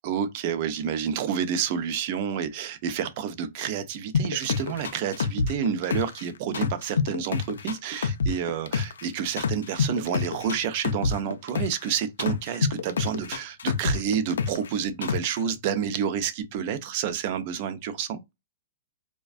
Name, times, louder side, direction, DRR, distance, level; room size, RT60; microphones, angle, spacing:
voice 1, 0.0-18.2, right 8 dB, 40° right, 0.5 m, -29 dB
sound 1, 4.1-6.2 6.5-9.0 9.4-11.9 12.2-14.7 15.0-15.4, left 5 dB, 90° left, 0.4 m, -26 dB
2.4 x 2.2 x 2.4 m
hypercardioid pair, 150°, 0 cm